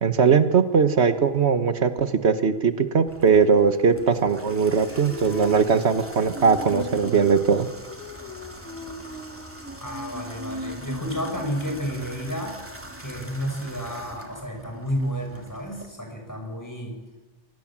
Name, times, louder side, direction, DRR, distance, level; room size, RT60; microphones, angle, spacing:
voice 1, 0.0-7.7, right 6 dB, 80° right, 11 dB, 1.5 m, -20 dB
Water tap faucet / Bathtub (filling or washing), 3.1-15.9, right 1 dB, 10° right, 2.9 m, -43 dB
Female singing, 4.9-12.6, equal, 85° left, 2.0 m, -39 dB
voice 2, 9.8-12.6 13.0-17.0, equal, 15° left, 2 dB, 6.5 m, -31 dB
25.5 x 19.5 x 7.5 m, 1.2 s
omnidirectional pair, 1.1 m